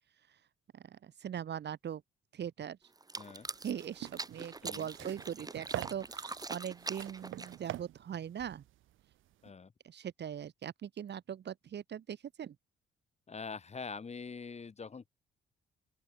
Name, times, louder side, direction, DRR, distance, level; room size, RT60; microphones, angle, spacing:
voice 1, 0.7-2.0 2.3-2.8 3.2-3.3 3.6-8.6 9.8-12.6, right 9 dB, 60° right, 4.5 m, -41 dB
sound 1, 3.0-7.8, right 3 dB, 20° right, 1.5 m, -44 dB
voice 2, 3.2-3.5 4.6-4.9 9.4-9.7 13.3-15.1, left 5 dB, 35° left, 2.4 m, -44 dB
sound 2, 3.4-9.5, right 14 dB, 85° right, 4.7 m, -45 dB
open air
cardioid pair, 90°, 20 cm